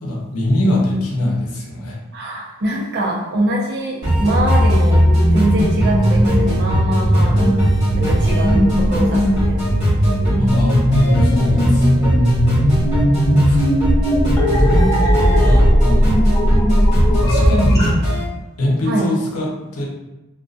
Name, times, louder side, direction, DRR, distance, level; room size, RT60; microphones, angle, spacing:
voice 1, 0.0-2.0 10.4-13.6 14.4-16.1 17.2-18.1 18.6-19.8, left 1 dB, 90° left, -3 dB, 0.6 m, -22 dB
voice 2, 2.1-5.1 5.3-9.7 13.0-14.0 18.8-19.1, right 1 dB, 50° right, -4 dB, 0.6 m, -24 dB
sound 1, 4.0-18.2, right 1 dB, 20° right, 1.2 m, -21 dB
sound 2, 4.2-17.9, equal, 15° left, 0.5 m, -16 dB
2.6 x 2.3 x 2.3 m, 1.0 s
head